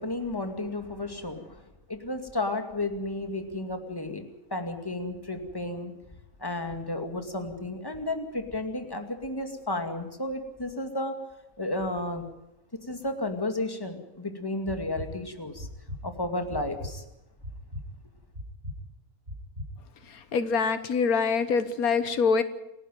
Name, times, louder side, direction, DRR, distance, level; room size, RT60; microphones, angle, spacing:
voice 1, 0.0-1.6 1.9-4.2 4.5-5.9 6.4-11.1 11.6-12.2 12.7-15.7 16.0-17.0, left 2 dB, 15° left, 6 dB, 2.3 m, -32 dB
sound 1, 14.7-15.1 15.6-16.0 16.5-16.9 17.4-17.8 18.3-18.8 19.3-19.7, left 1 dB, 40° right, 7.9 m, -37 dB
voice 2, 20.3-22.4, left 5 dB, 85° left, 12 dB, 1.7 m, -24 dB
28.0 x 11.5 x 9.3 m, 0.94 s
omnidirectional pair, 1.5 m